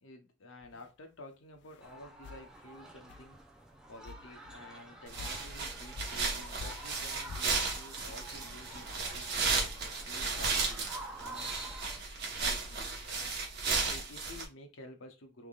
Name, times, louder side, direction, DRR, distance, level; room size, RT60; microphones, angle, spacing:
voice 1, 0.0-3.4 3.9-8.9 9.1-9.6 10.0-11.5 12.3-13.3 13.8-15.5, left 2 dB, 80° left, 4 dB, 1.0 m, -51 dB
sound 1, 0.6-0.9 1.6-1.9 2.2-2.5 3.1-3.3 3.7-3.8 4.0-4.6 5.2-5.4 5.9-6.3 6.6-6.9 7.3-7.5, left 4 dB, 55° left, 0.3 m, -47 dB
sound 2, 1.8-12.0, right 2 dB, 5° right, 0.5 m, -49 dB
sound 3, 5.1-14.4, right 4 dB, 55° right, 1.1 m, -34 dB
3.6 x 3.6 x 2.4 m, 0.26 s
head